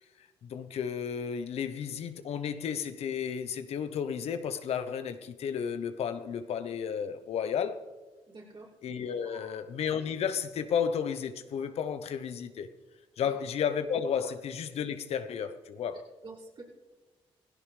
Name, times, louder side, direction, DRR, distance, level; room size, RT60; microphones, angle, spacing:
voice 1, 0.4-7.8 8.8-12.7 13.2-16.1, left 7 dB, 70° left, 0.9 m, -33 dB
voice 2, 8.3-8.7 9.2-9.6 13.2-13.4 14.2-14.3 16.2-16.6, right 3 dB, 50° right, 5.9 m, -46 dB
17.5 x 16.5 x 3.4 m
supercardioid pair, 55°, 11 cm